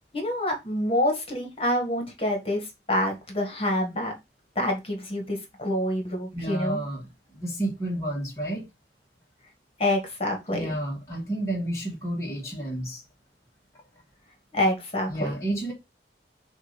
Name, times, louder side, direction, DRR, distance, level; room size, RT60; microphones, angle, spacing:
voice 1, 0.1-4.1 4.6-6.8 9.8-10.8 14.5-15.4, left 1 dB, 35° left, 1.9 m, -27 dB
voice 2, 6.3-8.6 10.5-13.0 15.1-15.7, right 1 dB, 15° left, 1.7 m, -31 dB
7.4 x 2.8 x 5.3 m
head